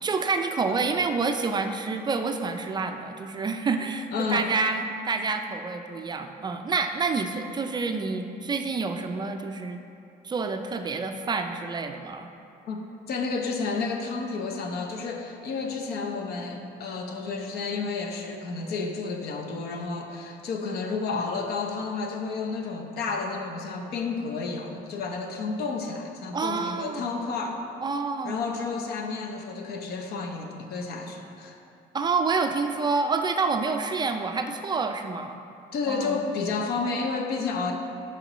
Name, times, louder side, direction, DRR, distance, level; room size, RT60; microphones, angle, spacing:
voice 1, 0.0-9.8 10.2-12.3 26.3-27.1 27.8-28.4 31.9-35.4 35.9-36.2, right 4 dB, 25° right, 6 dB, 0.3 m, -28 dB
voice 2, 4.1-4.5 12.7-12.8 13.1-27.6 28.2-31.6 35.7-37.7, left 4 dB, 70° left, 3 dB, 0.8 m, -31 dB
9.8 x 4.4 x 3.0 m, 2.6 s
cardioid pair, 110°, 17 cm